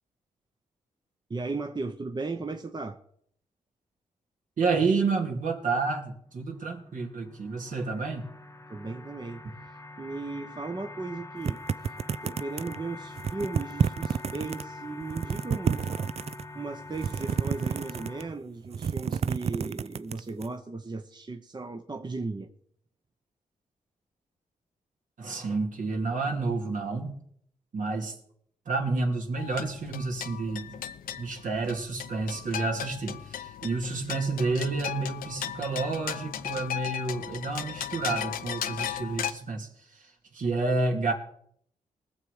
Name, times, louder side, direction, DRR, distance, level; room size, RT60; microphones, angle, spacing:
voice 1, 1.3-3.0 8.7-11.6 12.2-15.9 16.5-22.5, right 3 dB, 30° right, 1.0 m, -36 dB
voice 2, 4.6-8.3 25.2-27.2 27.7-28.2 28.7-30.8 31.2-41.1, right 3 dB, 65° right, 2.6 m, -30 dB
sound 1, 6.2-18.3, left 2 dB, 20° left, 1.0 m, -45 dB
sound 2, 11.4-12.8 13.2-14.6 15.0-16.4 16.9-18.3 18.6-20.5, right 7 dB, 45° right, 0.5 m, -29 dB
sound 3, 29.4-39.3, left 10 dB, 85° left, 0.8 m, -36 dB
20.0 x 7.1 x 4.9 m
cardioid pair, 60°, 14 cm